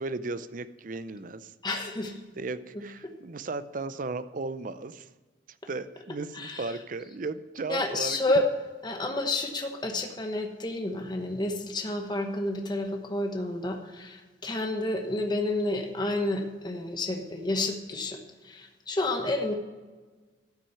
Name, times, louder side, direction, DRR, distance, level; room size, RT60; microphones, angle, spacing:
voice 1, 0.0-1.9 2.4-5.1 5.7-8.2, right 3 dB, 45° right, 14 dB, 0.5 m, -36 dB
voice 2, 1.6-2.2 2.7-2.8 6.3-6.8 7.7-8.5 8.8-18.2 18.4-19.5, left 2 dB, 25° left, 4 dB, 1.0 m, -30 dB
12.5 x 6.1 x 5.7 m, 1.3 s
head